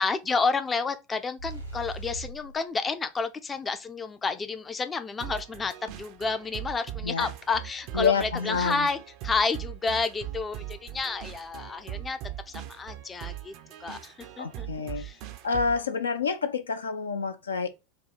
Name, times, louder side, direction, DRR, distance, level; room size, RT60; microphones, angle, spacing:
voice 1, 0.0-9.0 9.2-12.2 12.5-13.5 13.8-14.7 15.0-15.2, left 4 dB, 20° left, 0.4 m, -30 dB
sound 1, 1.4-2.6, right 2 dB, 85° right, 1.2 m, -38 dB
sound 2, 5.2-15.9, right 13 dB, 50° right, 0.4 m, -40 dB
voice 2, 7.9-8.9 14.4-15.1 15.4-17.7, left 5 dB, 75° left, 0.5 m, -28 dB
3.5 x 2.3 x 4.1 m
figure-of-eight pair, 80°, 0 cm